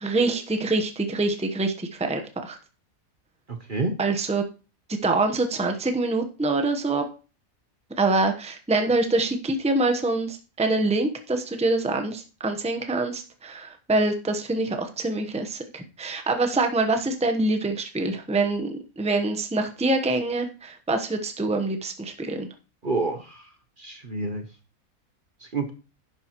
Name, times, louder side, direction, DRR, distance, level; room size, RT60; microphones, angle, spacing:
voice 1, 0.0-2.6 4.0-4.4 5.0-7.0 8.0-22.5, right 2 dB, 5° right, 6 dB, 0.9 m, -25 dB
voice 2, 3.5-3.9 22.8-23.5 23.8-24.4 25.4-25.7, right 3 dB, 40° right, 6 dB, 1.1 m, -28 dB
11.5 x 9.5 x 3.1 m, 0.35 s
omnidirectional pair, 1.5 m